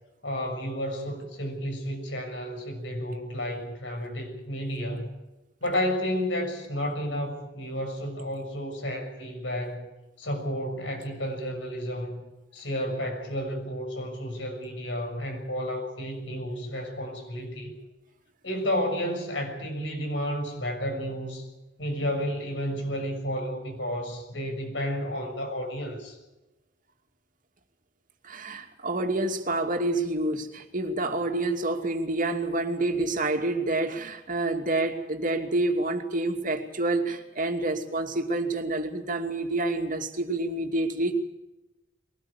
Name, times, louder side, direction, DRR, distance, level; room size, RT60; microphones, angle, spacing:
voice 1, 0.2-5.1 5.6-9.9 10.2-12.2 12.5-17.7 18.4-21.5 21.8-26.2, equal, 90° left, 4 dB, 6.6 m, -31 dB
voice 2, 28.2-41.1, right 2 dB, 45° right, 5 dB, 2.6 m, -28 dB
22.5 x 18.5 x 8.5 m, 1.0 s
head